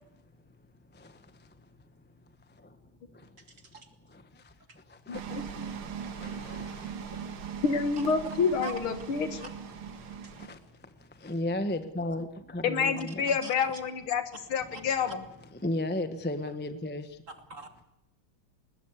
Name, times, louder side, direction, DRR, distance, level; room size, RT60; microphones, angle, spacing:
voice 1, 0.9-1.7 2.5-2.8 3.1-3.4 4.0-7.2 10.0-13.4 14.7-14.8 15.5-17.2, left 1 dB, 5° left, 0.9 m, -37 dB
voice 2, 3.5-3.9 8.0-8.1 8.6-8.8 9.4-9.5 13.4-13.8 14.7-14.8 17.5-17.8, right 4 dB, 40° right, 2.4 m, -43 dB
voice 3, 5.1-5.7 7.6-9.5 12.6-14.2 14.5-15.2, left 5 dB, 85° left, 2.5 m, -28 dB
sound 1, 5.1-10.5, right 7 dB, 90° right, 2.4 m, -40 dB
21.0 x 20.5 x 8.2 m
omnidirectional pair, 2.3 m